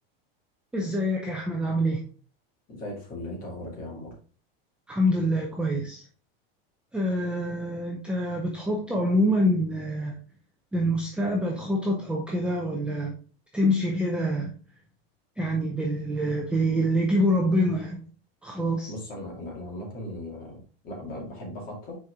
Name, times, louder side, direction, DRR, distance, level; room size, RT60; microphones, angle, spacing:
voice 1, 0.7-2.0 4.9-6.0 6.9-10.2 10.7-13.1 13.5-14.5 15.4-18.0 18.4-18.9, equal, 5° right, -1 dB, 0.6 m, -26 dB
voice 2, 2.7-4.1 18.9-22.0, left 1 dB, 30° left, -2 dB, 2.4 m, -38 dB
6.3 x 4.6 x 3.5 m, 0.39 s
supercardioid pair, 165°, 30 cm